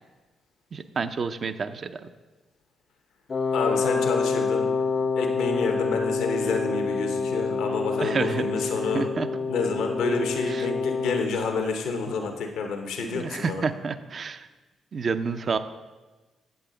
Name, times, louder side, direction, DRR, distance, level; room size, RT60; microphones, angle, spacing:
voice 1, 0.7-2.1 7.5-7.6 8.0-8.5 8.9-9.3 10.5-10.7 13.1-14.5 14.9-15.6, right 5 dB, 50° right, 10 dB, 0.5 m, -29 dB
Wind instrument woodwind instrument, 3.3-11.4, left 4 dB, 45° left, 0.4 m, -27 dB
voice 2, 3.5-9.1 9.5-13.6, left 4 dB, 80° left, 4 dB, 0.8 m, -29 dB
8.3 x 7.8 x 3.9 m, 1.2 s
supercardioid pair, 55°, 0 cm